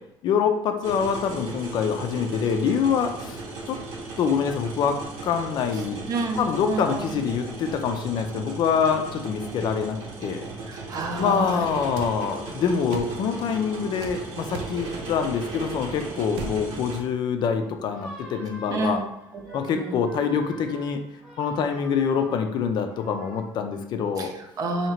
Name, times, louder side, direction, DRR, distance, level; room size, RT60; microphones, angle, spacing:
voice 1, 0.2-3.4 3.7-3.8 4.2-6.0 6.4-10.5 11.2-19.0 19.5-21.0 21.4-24.3, left 6 dB, 50° left, 6 dB, 0.4 m, -25 dB
sound 1, 0.8-17.0, right 3 dB, 70° right, 1.0 m, -37 dB
voice 2, 6.1-7.2 10.7-11.7 18.7-19.0 19.3-20.0 24.2-24.9, right 3 dB, 40° right, 3 dB, 0.6 m, -30 dB
sound 2, 12.0-12.1 12.9-13.1 14.0-14.2 14.5-14.8 16.3-16.6, right 4 dB, 85° right, 0.5 m, -34 dB
sound 3, 13.0-14.3 15.4-15.7 17.7-23.4, right 1 dB, ahead, 1.0 m, -46 dB
2.9 x 2.8 x 4.3 m, 0.81 s
cardioid pair, 145°, 10 cm